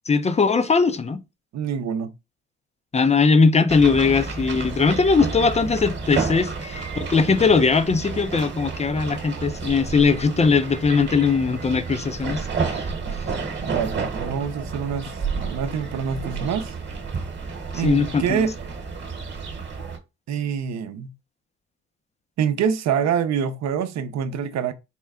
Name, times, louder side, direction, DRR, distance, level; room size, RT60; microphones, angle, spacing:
voice 1, 0.1-1.2 2.9-12.9 17.8-18.5, left 4 dB, 20° left, 0.5 m, -20 dB
voice 2, 1.5-2.1 13.6-16.7 17.7-18.5 20.3-21.1 22.4-24.7, right 7 dB, 65° right, 0.6 m, -26 dB
sound 1, 3.7-20.0, right 4 dB, 35° right, 1.1 m, -31 dB
4.3 x 2.1 x 3.5 m
cardioid pair, 90°, 30 cm